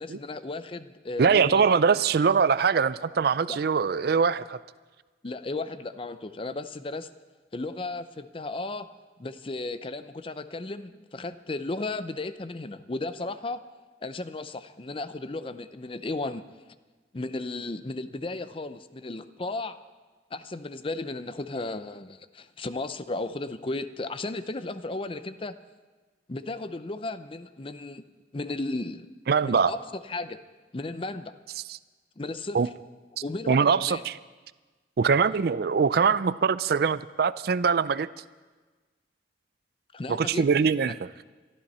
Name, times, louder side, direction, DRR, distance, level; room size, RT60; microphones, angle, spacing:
voice 1, 0.0-1.7 3.5-3.6 5.2-7.1 7.5-8.9 9.2-13.6 14.0-16.4 17.1-19.8 20.3-25.6 26.3-28.0 28.3-29.1 29.4-30.4 30.7-31.3 32.2-32.6 33.2-34.0 39.9-40.5 40.8-40.9, left 2 dB, 30° left, 12 dB, 0.6 m, -35 dB
voice 2, 1.2-4.6 29.3-29.7 32.5-32.7 33.5-34.2 35.0-38.1 40.1-41.1, right 5 dB, 60° right, 16 dB, 0.4 m, -23 dB
23.0 x 13.5 x 4.3 m, 1.3 s
head